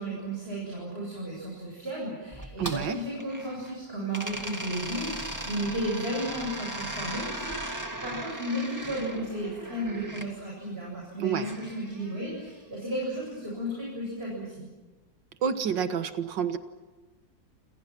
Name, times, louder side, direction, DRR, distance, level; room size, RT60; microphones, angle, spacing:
voice 1, 0.0-14.6, right 1 dB, 30° right, -4 dB, 8.1 m, -34 dB
sound 1, 2.3-3.7 4.1-10.3 11.4-12.5, right 1 dB, 10° right, 2.3 m, -38 dB
voice 2, 2.6-3.0 11.2-11.5 15.4-16.6, right 7 dB, 85° right, 9 dB, 2.1 m, -28 dB
29.0 x 28.0 x 6.1 m, 1.2 s
omnidirectional pair, 1.9 m